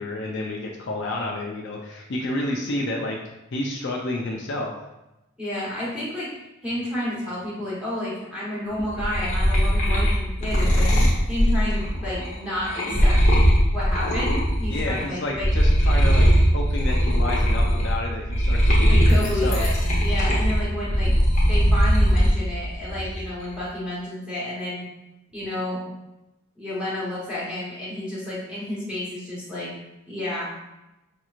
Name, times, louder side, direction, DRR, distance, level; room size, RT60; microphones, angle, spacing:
voice 1, 0.0-3.2 3.5-4.7 14.7-19.6, left 1 dB, 60° left, -1 dB, 0.5 m, -30 dB
voice 2, 5.4-6.3 6.6-10.9 11.3-13.2 13.7-15.5 18.9-19.7 20.0-21.1 21.5-24.8 25.3-25.8 26.6-29.7 30.1-30.5, left 1 dB, 5° right, -8 dB, 1.2 m, -30 dB
sound 1, 8.8-15.0 15.3-22.4 22.8-23.4, equal, 35° left, 0.9 m, -20 dB
5.2 x 3.0 x 2.4 m, 0.94 s
head